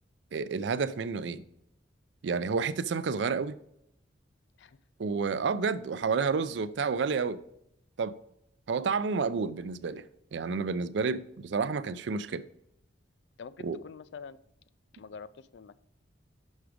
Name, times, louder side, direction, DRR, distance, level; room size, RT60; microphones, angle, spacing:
voice 1, 0.3-1.4 2.2-3.6 5.0-7.4 8.0-8.2 8.7-10.0 10.3-12.4 13.6-13.8, right 5 dB, 65° right, 0.4 m, -30 dB
voice 2, 13.4-14.4 14.9-15.7, left 5 dB, 65° left, 0.4 m, -46 dB
6.3 x 5.9 x 5.0 m
head